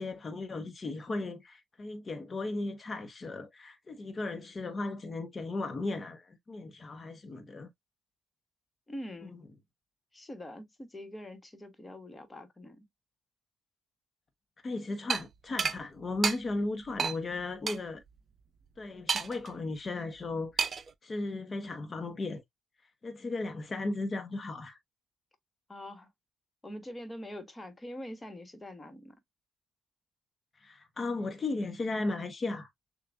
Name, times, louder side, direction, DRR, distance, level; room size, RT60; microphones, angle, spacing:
voice 1, 0.0-7.7 9.2-9.4 14.6-18.0 18.8-20.7 21.0-22.4 23.0-24.8 30.6-32.7, left 2 dB, 35° left, 0.9 m, -36 dB
voice 2, 8.9-9.4 10.1-12.8 25.7-26.1 26.6-29.2, left 1 dB, 20° left, 1.4 m, -44 dB
sound 1, 15.1-15.2 15.6-15.8 16.2-16.4 17.0-17.2 17.7-17.8 19.1-19.5 20.6-20.9, right 5 dB, 45° right, 0.6 m, -29 dB
6.7 x 2.4 x 2.5 m
cardioid pair, 85°, 0 cm